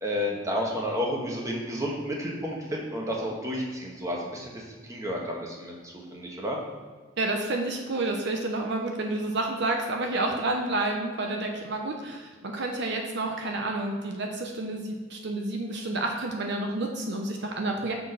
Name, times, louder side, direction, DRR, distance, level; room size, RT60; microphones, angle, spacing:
voice 1, 0.0-4.6 4.9-6.6, equal, 15° right, -2 dB, 1.3 m, -31 dB
voice 2, 7.2-18.0, right 2 dB, 65° right, 2 dB, 0.8 m, -29 dB
6.2 x 4.5 x 5.6 m, 1.5 s
head